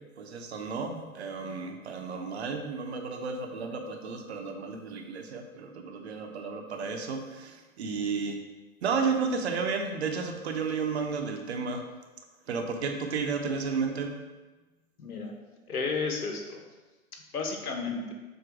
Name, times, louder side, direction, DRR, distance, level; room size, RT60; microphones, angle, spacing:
voice 1, 0.0-8.4 8.8-11.8 12.5-14.2, right 5 dB, 45° right, 4 dB, 1.0 m, -32 dB
voice 2, 15.0-15.3 15.7-16.6 17.3-18.1, left 4 dB, 90° left, 2 dB, 1.6 m, -32 dB
7.9 x 3.0 x 6.2 m, 1.2 s
hypercardioid pair, 155°, 43 cm